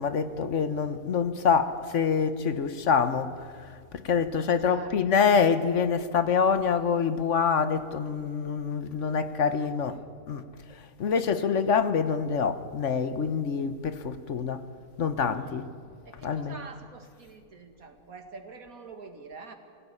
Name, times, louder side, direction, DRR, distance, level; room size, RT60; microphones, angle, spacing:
voice 1, 0.0-3.3 3.9-10.0 10.3-10.4 11.0-14.6 15.0-15.7 16.2-16.6, left 6 dB, 60° left, 1.3 m, -26 dB
voice 2, 4.6-5.3 9.1-10.0 15.3-19.5, right 3 dB, 90° right, 2.5 m, -47 dB
24.0 x 16.5 x 9.9 m
omnidirectional pair, 1.4 m